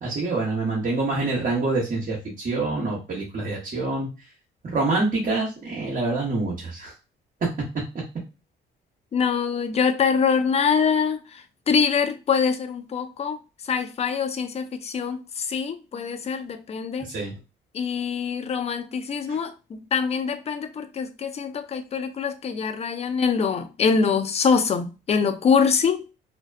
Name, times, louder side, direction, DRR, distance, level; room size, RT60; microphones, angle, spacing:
voice 1, 0.0-4.1 4.6-6.9 7.4-7.5 7.7-7.8 17.0-17.3 19.3-19.4, right 3 dB, 45° right, 0.9 m, -26 dB
voice 2, 9.1-11.2 11.7-13.4 13.7-17.1 17.7-26.1, left 6 dB, 35° left, 0.4 m, -24 dB
2.5 x 2.1 x 2.3 m
cardioid pair, 90°, 20 cm